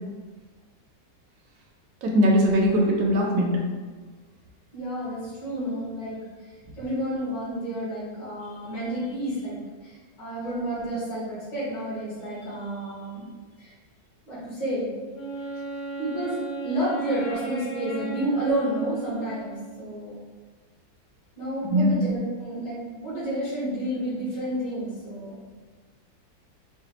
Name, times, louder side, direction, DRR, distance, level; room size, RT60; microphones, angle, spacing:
voice 1, 2.0-3.6 21.7-21.9, equal, 65° right, -1 dB, 1.1 m, -20 dB
voice 2, 4.7-6.2 6.8-13.3 13.6-13.8 14.3-15.0 16.0-20.2 21.4-25.4, right 1 dB, 70° left, -8 dB, 2.1 m, -30 dB
Wind instrument woodwind instrument, 15.1-19.9, right 4 dB, 40° left, 0.8 m, -35 dB
5.0 x 2.2 x 2.8 m, 1.4 s
omnidirectional pair, 2.0 m